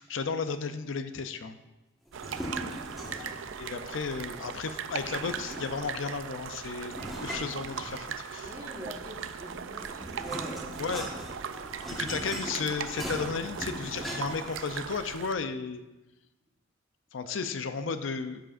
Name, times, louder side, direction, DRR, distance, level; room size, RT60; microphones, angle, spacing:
voice 1, 0.0-1.6 3.6-8.5 10.8-11.0 11.9-15.8 17.1-18.4, left 5 dB, 75° left, 10 dB, 0.5 m, -34 dB
sound 1, 2.1-3.4 4.9-5.9 6.9-8.3 9.4-14.5, equal, ahead, 1.4 m, -40 dB
sound 2, 2.1-15.3, right 7 dB, 70° right, 0.4 m, -39 dB
voice 2, 2.8-3.3 8.4-10.7 17.2-17.3 17.7-18.1, right 1 dB, 20° right, -1 dB, 1.5 m, -45 dB
12.5 x 7.6 x 2.5 m, 1.0 s
head